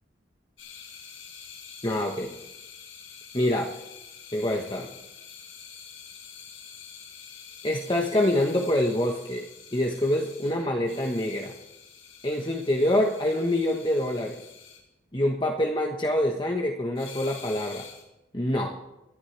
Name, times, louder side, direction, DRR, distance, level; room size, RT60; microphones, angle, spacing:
sound 1, 0.6-14.8 17.0-18.0, left 7 dB, 85° left, 4.8 m, -47 dB
voice 1, 1.8-2.3 3.3-3.7 4.3-4.9 7.6-9.4 9.7-11.5 12.2-14.4 15.1-17.9 18.3-18.7, left 1 dB, 25° left, 1 dB, 1.2 m, -26 dB
26.5 x 11.5 x 3.4 m, 0.95 s
head